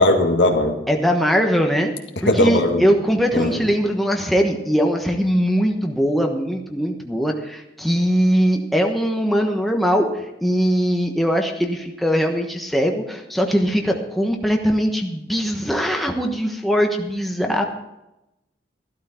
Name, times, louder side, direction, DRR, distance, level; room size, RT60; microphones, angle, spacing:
voice 1, 0.0-0.8 2.3-2.8 3.3-3.6, left 1 dB, 70° left, 3 dB, 1.8 m, -18 dB
voice 2, 0.9-1.9 2.2-17.6, equal, ahead, 2 dB, 1.1 m, -21 dB
14.5 x 12.5 x 4.4 m, 0.91 s
head